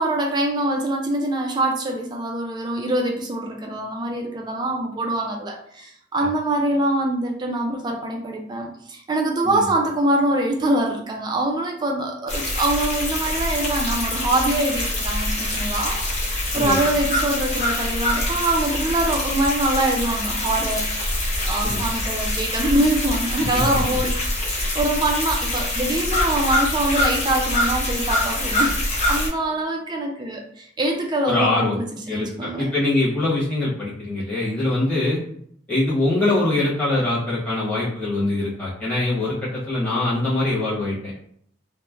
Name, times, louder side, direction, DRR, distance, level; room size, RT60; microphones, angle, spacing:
voice 1, 0.0-20.9 21.4-28.7 29.0-32.7, right 1 dB, 25° right, 1 dB, 0.3 m, -24 dB
sound 1, 12.3-29.3, left 1 dB, 35° left, 0.7 m, -24 dB
voice 2, 31.2-31.8 32.1-35.2 35.7-41.2, left 2 dB, 10° left, -9 dB, 1.1 m, -23 dB
3.0 x 2.1 x 2.4 m, 0.66 s
head